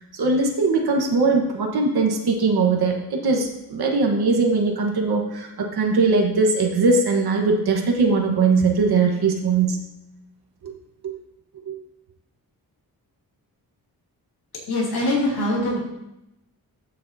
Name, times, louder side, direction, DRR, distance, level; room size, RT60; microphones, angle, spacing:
voice 1, 0.2-9.8 10.6-10.7 11.0-11.1 11.7-11.8, right 4 dB, 80° right, 1 dB, 1.3 m, -20 dB
voice 2, 14.7-15.8, left 1 dB, 80° left, -5 dB, 2.8 m, -22 dB
13.5 x 6.6 x 2.7 m, 0.89 s
cardioid pair, 85°, 38 cm